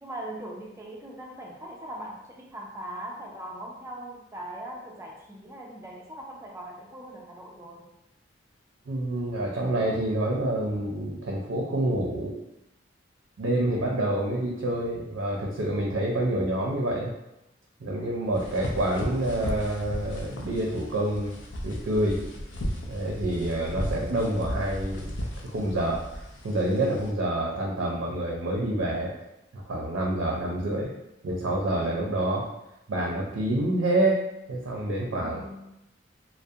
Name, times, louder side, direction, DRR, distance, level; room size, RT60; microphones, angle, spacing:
voice 1, 0.0-7.9 30.6-30.9 35.2-35.7, right 1 dB, 15° right, -1 dB, 0.3 m, -40 dB
voice 2, 8.9-12.4 13.4-17.1 17.8-21.3 21.6-22.2 22.9-25.1 25.4-29.1 29.5-30.9 31.2-32.4 32.9-35.4, right 1 dB, 85° right, -2 dB, 0.4 m, -27 dB
sound 1, 18.3-27.1, equal, 70° left, 0.4 m, -35 dB
2.4 x 2.0 x 2.6 m, 0.87 s
head